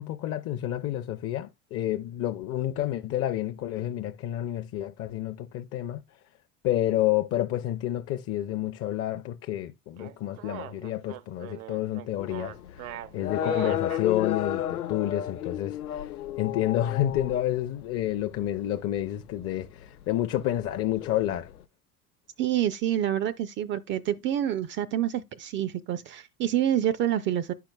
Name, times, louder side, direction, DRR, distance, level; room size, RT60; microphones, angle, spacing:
voice 1, 0.0-6.0 6.6-21.5, left 13 dB, 35° left, 0.5 m, -29 dB
sound 1, 10.0-14.1, right 14 dB, 70° right, 0.6 m, -40 dB
sound 2, 12.2-21.6, left 11 dB, 85° left, 0.6 m, -33 dB
voice 2, 22.4-27.5, right 11 dB, 30° right, 0.4 m, -27 dB
11.5 x 4.7 x 2.2 m
figure-of-eight pair, 70°, 44 cm